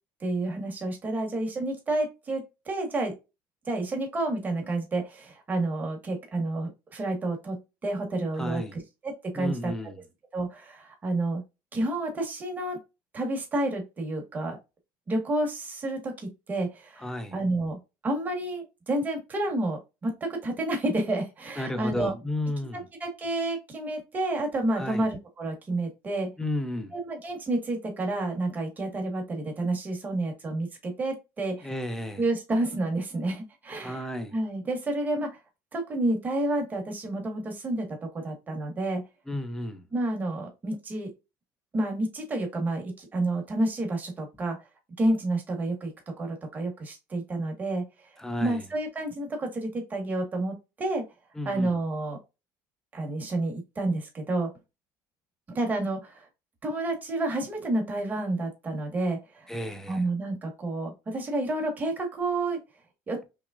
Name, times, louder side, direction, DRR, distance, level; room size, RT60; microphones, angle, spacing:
voice 1, 0.2-3.1 3.7-9.7 10.3-11.4 11.7-12.8 13.1-14.6 15.1-17.8 18.0-22.1 23.0-26.3 26.9-31.7 32.2-34.0 34.3-35.3 35.7-39.0 39.9-41.1 41.7-44.6 45.0-45.9 46.2-47.8 48.4-51.0 51.4-52.2 52.9-54.5 55.5-56.2 56.6-59.2 59.9-62.6 63.1-63.2, right 2 dB, 20° right, 1.4 m, -30 dB
voice 2, 8.4-8.8 9.3-10.0 17.0-17.4 21.6-22.9 24.8-25.1 26.4-26.9 31.6-32.2 33.8-34.3 39.3-39.9 48.2-48.6 51.3-51.8 59.5-60.0, left 1 dB, 5° left, 0.6 m, -33 dB
6.0 x 2.1 x 2.4 m
cardioid pair, 150°, 9 cm